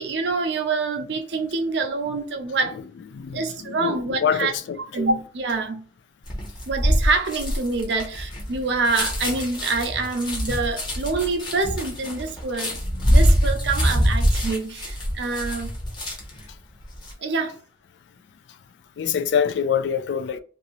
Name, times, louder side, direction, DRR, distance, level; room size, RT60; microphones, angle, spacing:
voice 1, 0.0-2.8 3.3-4.5 4.8-5.9 6.7-12.8 13.1-15.7 17.2-17.5, right 3 dB, 65° right, 0.5 m, -26 dB
voice 2, 3.1-4.8 19.0-20.4, left 7 dB, 65° left, 0.3 m, -25 dB
sound 1, 6.3-16.4 16.8-17.1, equal, 25° left, 0.9 m, -23 dB
2.7 x 2.6 x 3.0 m
head